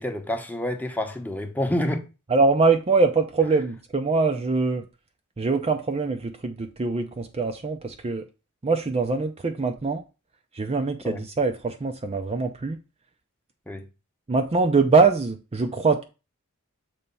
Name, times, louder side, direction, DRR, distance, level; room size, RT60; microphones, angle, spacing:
voice 1, 0.0-2.0 11.0-11.2 13.7-13.9, left 1 dB, 10° left, 0.9 m, -28 dB
voice 2, 2.3-4.8 5.4-8.2 8.6-10.0 10.6-12.8 14.3-16.0, right 4 dB, 30° right, 0.5 m, -23 dB
6.9 x 3.3 x 5.3 m
head